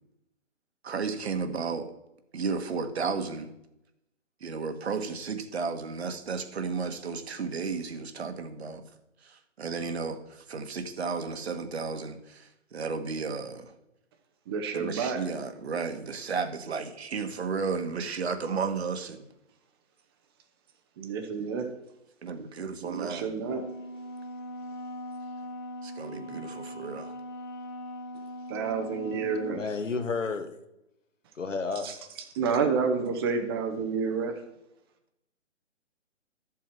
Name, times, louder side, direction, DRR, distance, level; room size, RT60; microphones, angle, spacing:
voice 1, 0.8-1.9 2.3-3.5 4.4-8.8 9.3-13.7 14.7-19.2 22.2-23.3 25.8-27.1, right 5 dB, 55° right, 7 dB, 1.7 m, -33 dB
voice 2, 14.5-15.2 21.0-21.7 22.8-23.6 28.5-29.7 31.8-32.0 32.3-34.4, right 5 dB, 20° right, 6 dB, 1.0 m, -29 dB
Wind instrument woodwind instrument, 23.4-29.7, equal, 40° left, 1.5 m, -40 dB
voice 3, 29.5-30.5 31.4-31.9, left 4 dB, 85° left, 8 dB, 1.7 m, -31 dB
13.0 x 7.4 x 4.7 m, 0.86 s
hypercardioid pair, 155°, 37 cm